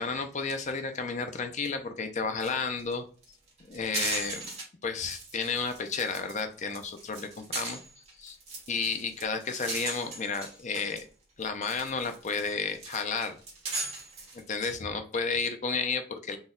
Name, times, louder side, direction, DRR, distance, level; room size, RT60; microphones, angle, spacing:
voice 1, 0.0-3.0 3.7-4.5 4.8-7.8 8.2-8.4 8.7-11.0 11.4-13.4 14.5-16.4, left 4 dB, 35° left, 6 dB, 0.5 m, -32 dB
sound 1, 2.4-2.5 2.8-2.9 3.2-4.6 5.0-6.4 6.7-11.0 11.4-14.7, right 3 dB, 30° right, 1.4 m, -38 dB
4.2 x 2.3 x 3.6 m, 0.41 s
head